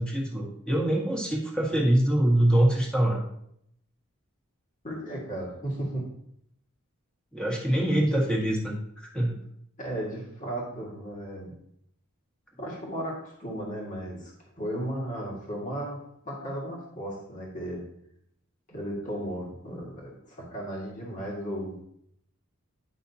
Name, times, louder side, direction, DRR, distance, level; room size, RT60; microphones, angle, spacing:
voice 1, 0.0-3.2 7.3-9.4, right 1 dB, 5° left, -2 dB, 1.6 m, -24 dB
voice 2, 4.8-6.1 9.8-11.5 12.6-17.8 18.7-21.8, right 1 dB, 35° left, -3 dB, 1.9 m, -35 dB
9.9 x 5.7 x 2.8 m, 0.72 s
head